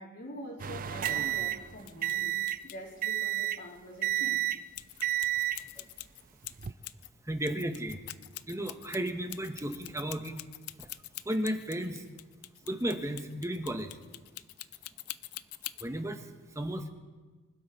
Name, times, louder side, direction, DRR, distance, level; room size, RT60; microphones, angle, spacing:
voice 1, 0.0-4.4, equal, 50° left, -7 dB, 3.2 m, -45 dB
sound 1, 0.6-2.7 3.0-3.7 4.0-4.7 5.0-5.6 6.4-6.7, right 12 dB, 40° right, 0.4 m, -31 dB
sound 2, 1.8-2.1 2.5-2.8 4.7-7.1 7.4-15.9, left 16 dB, 85° left, 0.5 m, -44 dB
voice 2, 7.3-8.0 8.5-10.4 10.8-10.9 11.2-12.0 12.6-14.0 15.8-16.3 16.5-16.9, right 1 dB, 15° right, 7 dB, 1.0 m, -34 dB
25.0 x 12.5 x 4.1 m, 1.4 s
head